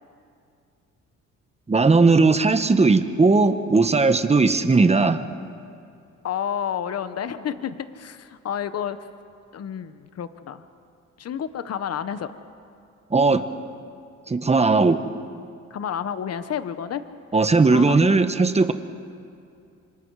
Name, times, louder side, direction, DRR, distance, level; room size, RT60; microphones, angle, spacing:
voice 1, 1.7-5.2 13.1-13.4 14.3-15.0 17.3-18.7, right 3 dB, 20° right, 10 dB, 1.3 m, -18 dB
voice 2, 6.2-9.0 9.5-10.6 11.2-12.3 15.7-17.0 17.3-17.4 17.7-18.0, left 8 dB, 55° left, 12 dB, 1.1 m, -30 dB
27.0 x 26.0 x 4.9 m, 2.5 s
cardioid pair, 90°, 30 cm